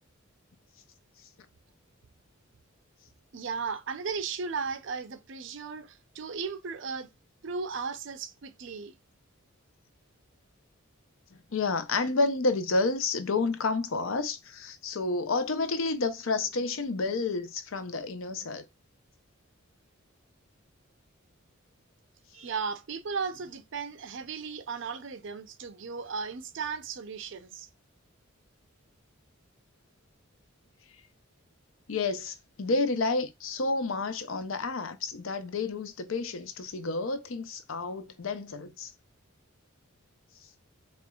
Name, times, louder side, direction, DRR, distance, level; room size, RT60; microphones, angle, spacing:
voice 1, 3.3-7.1 7.4-8.9 22.3-27.7, right 5 dB, 60° right, 0.5 m, -36 dB
voice 2, 11.5-18.6 31.9-38.9, left 3 dB, 70° left, 0.6 m, -30 dB
4.3 x 3.1 x 2.3 m
head